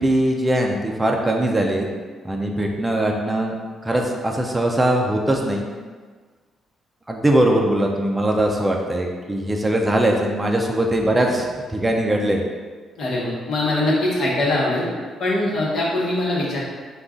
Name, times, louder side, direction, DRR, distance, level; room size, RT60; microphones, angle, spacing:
voice 1, 0.0-1.9 2.2-5.6 7.1-12.4, right 1 dB, 15° right, 0 dB, 0.4 m, -21 dB
voice 2, 13.0-14.9 15.2-16.6, left 1 dB, 65° left, -4 dB, 1.1 m, -22 dB
3.7 x 2.3 x 3.7 m, 1.5 s
cardioid pair, 90°, 0 cm